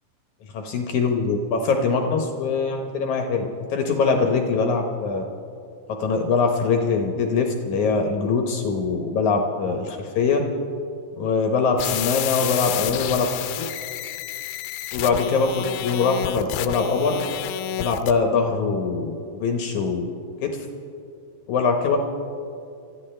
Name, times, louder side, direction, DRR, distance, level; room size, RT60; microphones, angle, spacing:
voice 1, 0.5-5.2 5.9-10.4 11.2-13.4 14.9-17.2 17.8-20.1 20.4-20.7 21.5-22.0, left 4 dB, 70° left, 3 dB, 2.0 m, -23 dB
sound 1, 11.8-18.1, left 12 dB, 85° left, 2.5 m, -30 dB
25.5 x 14.0 x 3.3 m, 2.5 s
omnidirectional pair, 4.2 m